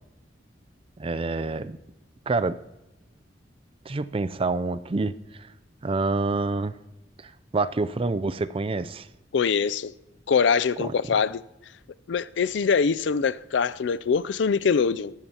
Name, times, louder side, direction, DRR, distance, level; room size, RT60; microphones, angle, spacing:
voice 1, 1.0-1.8 2.3-2.6 3.9-5.1 5.8-6.8 7.2-9.1 10.8-10.9, right 3 dB, 30° right, 0.4 m, -27 dB
voice 2, 9.3-9.9 10.3-11.4 12.1-15.1, left 5 dB, 70° left, 0.4 m, -23 dB
22.0 x 12.5 x 2.9 m
head